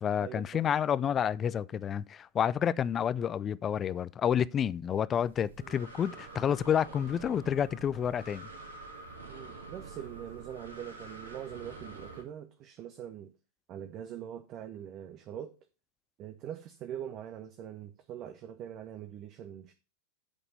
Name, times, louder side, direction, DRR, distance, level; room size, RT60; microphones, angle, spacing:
voice 1, 0.0-8.5, left 8 dB, 25° left, 0.4 m, -29 dB
Breathing, 5.1-12.2, right 3 dB, 70° right, 2.0 m, -47 dB
voice 2, 9.3-13.3 13.7-15.5 16.2-19.7, right 10 dB, 35° right, 0.8 m, -43 dB
8.4 x 5.4 x 5.2 m
figure-of-eight pair, 90°, 0 cm